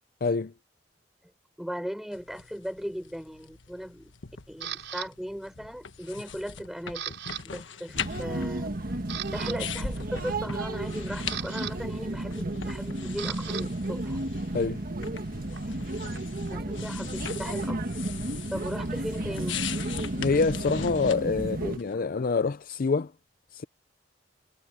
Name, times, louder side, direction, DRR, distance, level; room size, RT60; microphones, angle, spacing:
voice 1, 0.2-0.5 14.5-14.8 20.2-23.1 23.5-23.6, left 4 dB, 50° left, 0.5 m, -26 dB
voice 2, 1.6-4.1 4.5-7.2 7.4-8.8 9.3-14.2 15.5-15.8 16.5-17.8 18.5-19.6, equal, ahead, 5.8 m, -37 dB
sound 1, 2.1-21.9, left 7 dB, 85° left, 1.4 m, -41 dB
Camera, 4.6-5.1 5.7-6.0 6.3-7.4 7.7-7.9 8.4-8.5 8.9-9.6 10.8-13.6 13.9-16.5, right 9 dB, 85° right, 5.1 m, -39 dB
sound 2, 7.9-21.8, right 1 dB, 50° right, 1.5 m, -33 dB
head